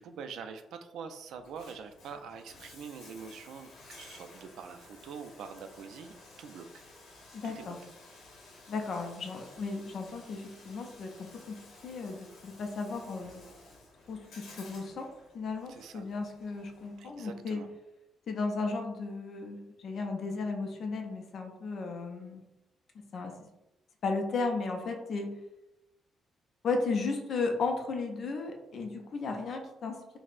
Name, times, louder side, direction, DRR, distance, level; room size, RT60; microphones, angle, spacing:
voice 1, 0.0-6.8 7.4-7.8 15.7-16.1 17.0-17.7, right 6 dB, 75° right, 7 dB, 0.3 m, -45 dB
Bathtub (filling or washing), 1.3-17.3, left 2 dB, 65° left, 0.8 m, -54 dB
voice 2, 7.3-7.8 8.7-11.5 11.8-13.4 14.1-15.1 15.3-17.6 18.3-22.4 23.1-23.3 24.0-25.3 26.6-30.2, left 3 dB, 45° left, 3 dB, 0.4 m, -35 dB
4.1 x 2.0 x 2.4 m, 0.91 s
cardioid pair, 165°, 0 cm